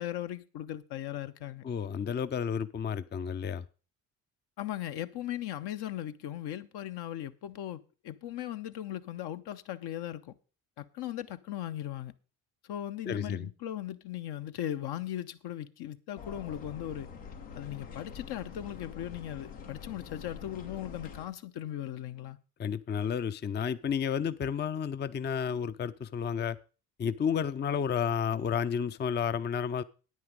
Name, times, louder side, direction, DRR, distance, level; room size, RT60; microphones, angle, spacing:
voice 1, 0.0-1.6 4.6-10.3 10.8-12.1 12.7-17.1 17.5-22.4, left 12 dB, 60° left, 0.9 m, -38 dB
voice 2, 1.6-3.6 13.1-13.5 22.6-26.6 27.0-29.8, left 7 dB, 25° left, 0.5 m, -31 dB
sound 1, 16.2-21.3, left 6 dB, 85° left, 1.9 m, -45 dB
9.4 x 9.4 x 5.2 m
hypercardioid pair, 55°, 45 cm